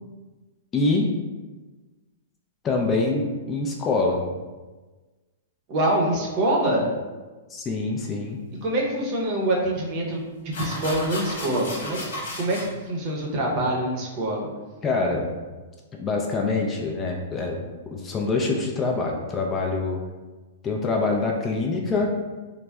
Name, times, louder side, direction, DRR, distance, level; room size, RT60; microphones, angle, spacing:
voice 1, 0.7-1.1 2.6-4.2 7.5-8.4 14.8-15.3 16.0-17.6 17.9-20.0 20.6-22.1, left 3 dB, 25° left, 0 dB, 0.4 m, -25 dB
voice 2, 5.7-6.9 8.6-12.0 12.4-14.5, right 1 dB, 45° right, -2 dB, 0.7 m, -25 dB
sound 1, 8.8-8.9 10.1-10.2 10.5-12.7, left 1 dB, 70° left, 0.8 m, -34 dB
3.3 x 2.0 x 2.2 m, 1.3 s
hypercardioid pair, 120°, 0 cm